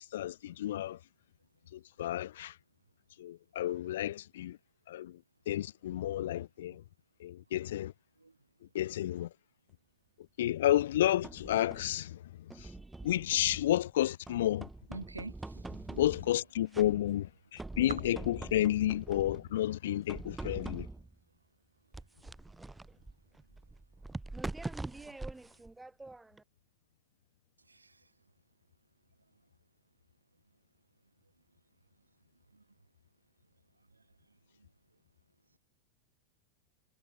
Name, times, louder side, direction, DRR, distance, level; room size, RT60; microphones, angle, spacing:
voice 1, 0.1-1.0 2.0-2.5 3.2-4.6 4.9-5.1 5.5-6.8 7.2-7.9 8.7-9.3 10.4-12.2 13.0-14.7 16.0-17.3 17.5-20.9, left 13 dB, 60° left, 0.3 m, -31 dB
sound 1, 10.8-12.0 12.5-13.9 14.3-16.4 16.7-17.3 17.6-19.5 20.1-21.2 21.9-26.4, right 2 dB, 5° right, 3.5 m, -44 dB
voice 2, 14.9-15.3 15.7-16.1 20.4-20.5 25.0-25.1, right 3 dB, 80° right, 2.2 m, -45 dB
figure-of-eight pair, 90°, 0 cm